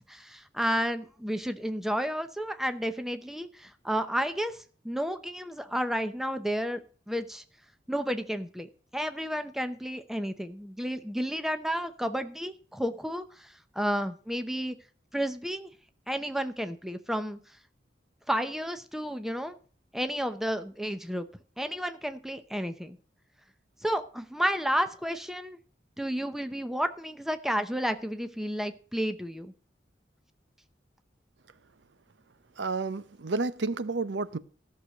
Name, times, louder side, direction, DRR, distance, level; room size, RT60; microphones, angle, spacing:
voice 1, 0.0-7.4 7.9-14.8 15.1-15.7 16.1-17.4 18.3-19.6 19.9-21.3 21.6-23.0 23.8-25.6 26.0-29.5, equal, ahead, 0.8 m, -31 dB
voice 2, 32.6-34.4, right 3 dB, 85° right, 0.7 m, -30 dB
14.0 x 6.5 x 6.5 m
head